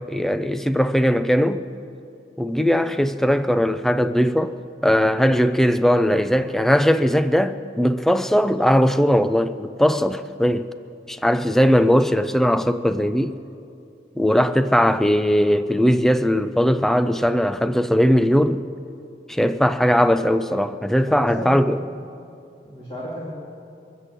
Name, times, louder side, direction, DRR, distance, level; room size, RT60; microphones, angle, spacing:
voice 1, 0.0-1.6 2.4-4.5 4.8-10.7 11.1-13.4 14.2-18.6 19.3-21.8, equal, ahead, 0.3 m, -19 dB
voice 2, 21.1-21.6 22.6-23.3, right 1 dB, 30° left, 2.5 m, -32 dB
22.5 x 8.3 x 7.6 m
head